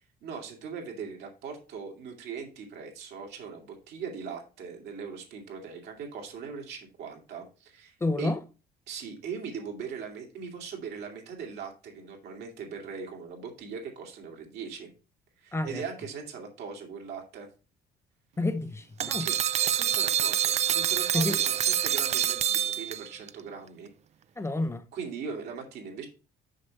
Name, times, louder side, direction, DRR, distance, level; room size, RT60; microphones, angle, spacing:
voice 1, 0.2-8.3 8.9-14.9 15.4-17.5 19.1-23.9 24.9-26.1, right 6 dB, 75° right, 2.4 m, -40 dB
voice 2, 8.0-8.4 15.5-15.8 18.4-19.3 21.1-21.4 24.4-24.8, left 2 dB, 15° left, 0.6 m, -29 dB
sound 1, 19.0-23.3, right 10 dB, 40° right, 0.4 m, -26 dB
6.5 x 5.3 x 4.5 m
cardioid pair, 110°, 17 cm